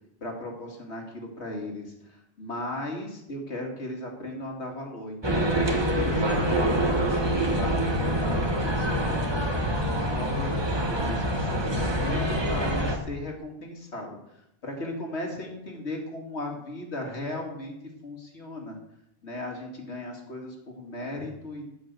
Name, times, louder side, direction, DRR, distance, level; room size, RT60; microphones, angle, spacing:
voice 1, 0.2-10.5 10.9-17.7 18.0-18.8 19.2-21.7, left 1 dB, 85° left, 1 dB, 2.4 m, -37 dB
sound 1, 5.2-13.0, equal, 25° right, 1.4 m, -25 dB
13.5 x 5.6 x 8.1 m, 0.80 s
omnidirectional pair, 1.1 m